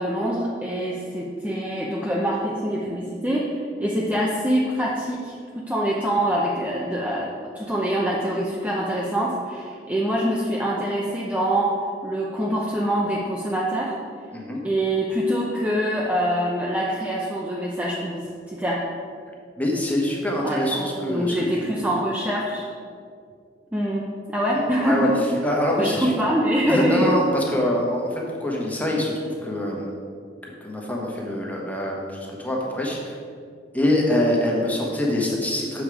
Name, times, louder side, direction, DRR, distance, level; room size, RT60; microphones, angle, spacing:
voice 1, 0.0-11.7 12.0-14.0 14.6-18.8 20.4-20.8 21.1-22.7 23.7-24.0 24.3-25.1 25.8-27.1, right 1 dB, 10° right, -4 dB, 0.6 m, -24 dB
voice 2, 19.6-21.8 24.5-25.1 25.4-26.1 26.7-30.0 30.4-33.2 33.7-35.8, left 1 dB, 10° left, -2 dB, 1.1 m, -25 dB
7.2 x 5.2 x 4.8 m, 2.2 s
head